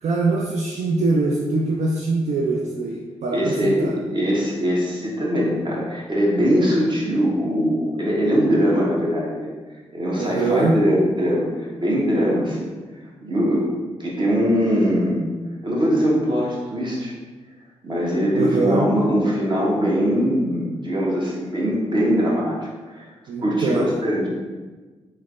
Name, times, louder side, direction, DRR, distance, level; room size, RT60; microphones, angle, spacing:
voice 1, 0.0-3.9 10.1-10.8 18.3-18.9 23.3-23.9, right 3 dB, 65° right, -2 dB, 0.4 m, -23 dB
voice 2, 3.3-9.5 9.9-12.7 13.2-13.7 14.0-15.2 15.6-17.1 17.8-23.1 23.4-24.3, equal, 40° right, -4 dB, 1.1 m, -21 dB
3.2 x 3.1 x 2.5 m, 1.3 s
supercardioid pair, 45°, 13 cm